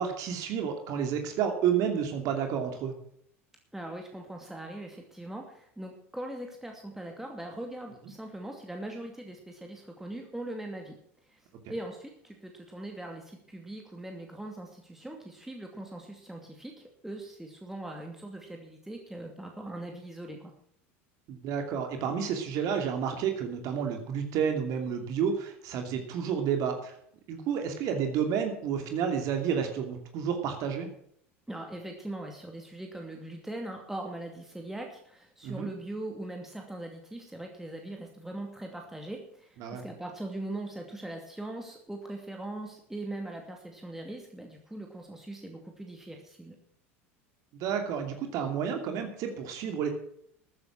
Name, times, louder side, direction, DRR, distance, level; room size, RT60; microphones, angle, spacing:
voice 1, 0.0-2.9 21.3-26.9 27.3-30.9 35.4-35.7 39.6-39.8 47.5-49.9, right 7 dB, 55° right, 5 dB, 2.7 m, -30 dB
voice 2, 3.7-11.0 11.3-11.4 11.7-20.5 31.5-46.6, right 1 dB, 5° right, 2 dB, 2.5 m, -41 dB
13.5 x 9.5 x 6.2 m, 0.67 s
hypercardioid pair, 85°, 7 cm